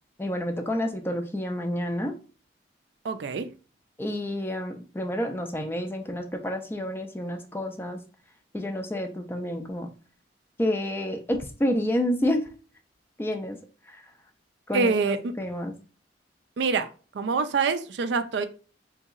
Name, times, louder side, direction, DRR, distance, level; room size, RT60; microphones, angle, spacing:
voice 1, 0.2-2.2 4.0-8.0 8.5-9.9 10.6-12.5 13.2-13.6 13.9-14.0 14.7-15.7, left 1 dB, 10° left, 5 dB, 0.3 m, -29 dB
voice 2, 3.0-3.5 14.7-15.3 16.6-16.9 17.1-18.5, right 4 dB, 70° right, 10 dB, 0.3 m, -25 dB
3.8 x 2.7 x 2.4 m, 0.37 s
head